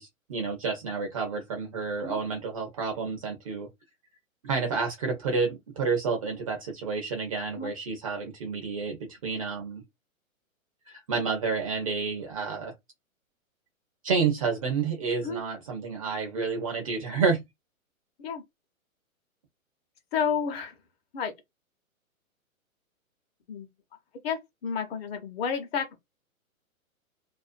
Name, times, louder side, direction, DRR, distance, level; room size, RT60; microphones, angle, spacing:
voice 1, 0.0-3.7 4.4-9.8 10.9-12.7 14.0-17.4, right 5 dB, 25° right, 0.4 m, -30 dB
voice 2, 20.1-20.7 21.1-21.3 23.5-23.7 24.2-26.0, left 6 dB, 45° left, 0.8 m, -31 dB
2.5 x 2.2 x 2.4 m
hypercardioid pair, 135°, 42 cm